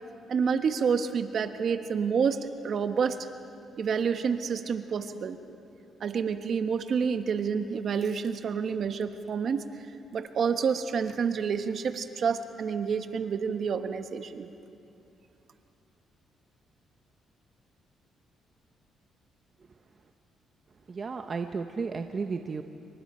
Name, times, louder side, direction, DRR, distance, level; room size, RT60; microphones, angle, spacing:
voice 1, 0.3-3.2 3.8-5.4 6.0-9.6 10.1-14.5, right 6 dB, 55° right, 8 dB, 1.2 m, -28 dB
voice 2, 20.9-22.6, right 4 dB, 40° right, 6 dB, 0.9 m, -33 dB
27.0 x 24.0 x 4.4 m, 2.7 s
cardioid pair, 90°, 0 cm